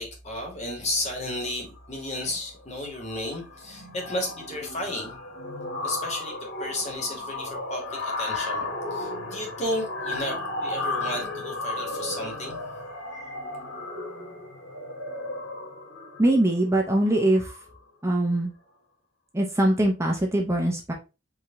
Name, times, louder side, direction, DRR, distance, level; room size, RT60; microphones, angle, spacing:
voice 1, 0.0-5.2 5.8-12.6, left 1 dB, 35° left, 1.6 m, -33 dB
sound 1, 1.8-2.1 2.4-2.6 2.9-17.8, left 2 dB, 80° left, 2.0 m, -34 dB
voice 2, 16.2-17.6 18.0-18.5 19.3-20.9, right 1 dB, 15° right, 0.7 m, -22 dB
4.8 x 2.8 x 3.6 m
head